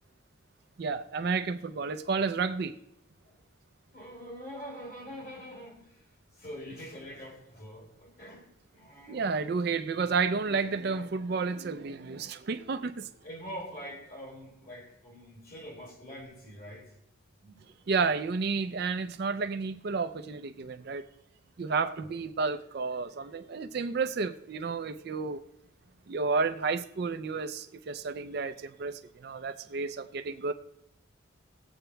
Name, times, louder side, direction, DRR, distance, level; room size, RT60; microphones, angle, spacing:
voice 1, 0.8-2.8 9.1-13.1 17.9-21.1 21.6-25.4 26.1-30.5, right 4 dB, 50° right, 0.4 m, -31 dB
voice 2, 3.9-6.1 6.3-9.4 13.2-16.9 17.4-17.8 22.0-22.2, equal, 45° left, 2.7 m, -45 dB
19.5 x 7.9 x 2.2 m
head